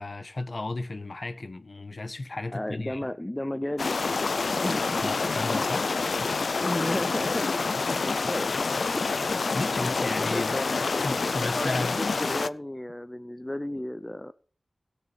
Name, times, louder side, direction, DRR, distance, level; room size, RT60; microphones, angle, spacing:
voice 1, 0.0-3.1 5.0-5.9 9.5-10.6 11.0-12.0, left 2 dB, 55° left, 1.2 m, -34 dB
voice 2, 2.5-4.0 4.6-5.0 6.6-8.6 8.9-9.3 9.6-14.3, left 1 dB, 20° left, 0.6 m, -34 dB
sound 1, 3.8-12.5, left 4 dB, 80° left, 0.4 m, -27 dB
17.0 x 6.8 x 5.0 m
cardioid pair, 45°, 0 cm